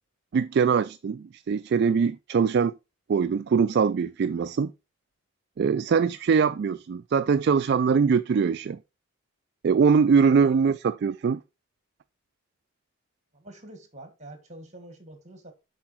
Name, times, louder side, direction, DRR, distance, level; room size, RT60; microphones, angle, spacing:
voice 1, 0.3-2.7 3.1-4.7 5.6-8.8 9.6-11.4, right 6 dB, 50° right, 0.3 m, -22 dB
voice 2, 13.3-15.5, right 1 dB, 35° right, 1.9 m, -46 dB
7.3 x 4.9 x 4.5 m
head